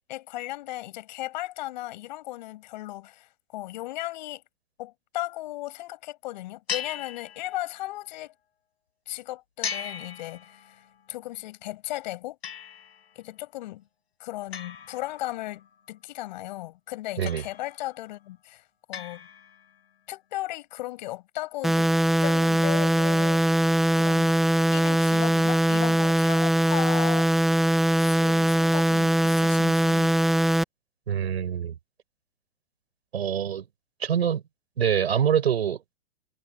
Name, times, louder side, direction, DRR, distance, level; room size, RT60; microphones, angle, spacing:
voice 1, 0.1-4.4 4.8-8.3 9.1-12.4 13.2-13.8 14.2-19.3 20.1-21.9 22.2-23.4 23.9-24.4 24.7-27.3 28.0-30.2, left 17 dB, 45° left, 7.0 m, -36 dB
sound 1, 6.7-7.9 9.6-10.9 12.4-13.1 14.5-15.7 17.3-18.0 18.9-19.8, left 7 dB, 90° left, 5.4 m, -38 dB
sound 2, 21.6-30.6, right 1 dB, ahead, 1.1 m, -21 dB
voice 2, 31.1-31.8 33.1-33.7 34.0-34.4 34.8-36.0, right 8 dB, 85° right, 5.1 m, -25 dB
hypercardioid pair, 155°, 31 cm